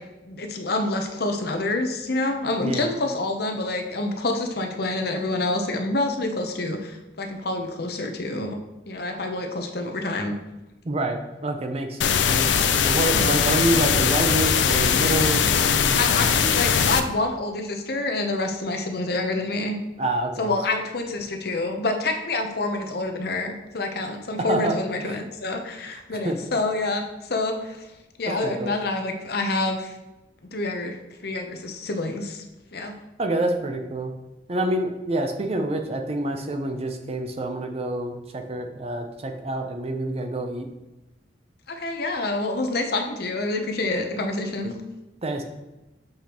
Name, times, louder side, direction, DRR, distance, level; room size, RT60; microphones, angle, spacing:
voice 1, 0.2-8.6 8.9-10.3 13.1-13.4 15.9-19.7 20.4-27.9 28.2-30.0 30.5-31.0 31.2-32.4 32.7-32.9 41.7-44.7, left 2 dB, 60° left, 4 dB, 0.8 m, -27 dB
voice 2, 10.8-12.5 12.8-16.0 20.0-20.5 24.5-24.8 25.0-25.2 26.1-26.4 28.4-28.7 33.2-34.1 34.5-40.7 45.2-45.4, right 1 dB, 35° right, 5 dB, 0.6 m, -27 dB
sound 1, 12.0-17.0, left 7 dB, 85° left, 0.5 m, -20 dB
7.2 x 5.0 x 3.0 m, 1.0 s
head